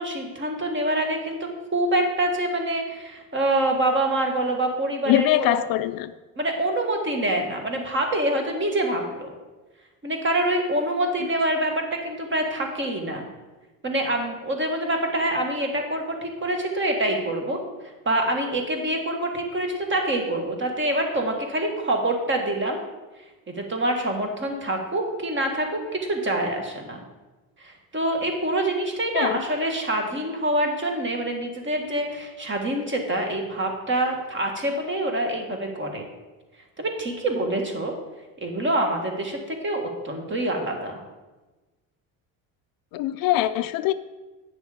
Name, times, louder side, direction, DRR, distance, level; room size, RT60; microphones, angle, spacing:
voice 1, 0.0-5.6 6.4-9.3 10.0-13.3 13.8-17.6 18.1-22.8 23.6-27.0 27.6-36.0 36.8-37.9 38.4-41.0, right 1 dB, 30° right, 3 dB, 1.9 m, -26 dB
voice 2, 5.1-6.1 29.1-29.4 42.9-43.9, left 14 dB, 65° left, 13 dB, 0.5 m, -22 dB
8.8 x 6.2 x 5.1 m, 1.2 s
cardioid pair, 100°, 37 cm